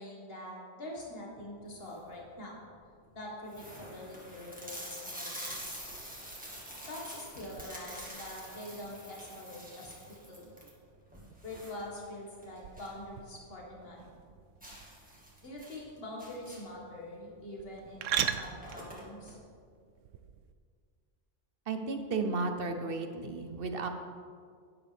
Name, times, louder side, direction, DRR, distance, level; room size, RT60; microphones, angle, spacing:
voice 1, 0.0-2.5 3.1-5.8 6.9-10.5 11.4-14.2 15.4-19.4, left 1 dB, 50° left, -3 dB, 2.1 m, -44 dB
sound 1, 1.6-2.1 2.7-2.8 3.1-3.2 3.5-13.0 13.4-13.5 13.8-13.9 14.6-16.8 17.8-17.9 18.2-19.3, equal, 5° right, 1.8 m, -46 dB
sound 2, 5.5-20.5, right 9 dB, 90° right, 0.9 m, -43 dB
voice 2, 21.7-23.9, right 3 dB, 55° right, 6 dB, 0.9 m, -33 dB
11.0 x 9.8 x 3.5 m, 2.1 s
omnidirectional pair, 1.2 m